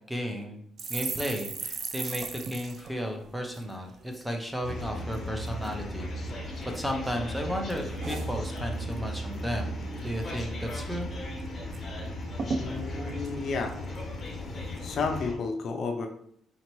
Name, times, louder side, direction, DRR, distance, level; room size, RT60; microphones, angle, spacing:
voice 1, 0.1-0.6 0.9-6.1 6.7-9.8 10.0-11.1, equal, 5° right, 3 dB, 0.6 m, -34 dB
sound 1, 0.8-4.3 4.6-4.8 5.1-5.7 6.3-7.1 7.4-9.0 9.3-9.6 9.8-10.4 10.8-10.9 11.1-11.8 12.1-12.2 12.4-14.3 14.8-15.1, right 4 dB, 50° right, 0.5 m, -38 dB
sound 2, 4.6-15.3, left 1 dB, 30° left, 1.0 m, -36 dB
voice 2, 12.6-13.8 14.8-16.1, left 4 dB, 55° left, 4 dB, 0.5 m, -31 dB
4.3 x 2.9 x 3.0 m, 0.68 s
cardioid pair, 105°, 0 cm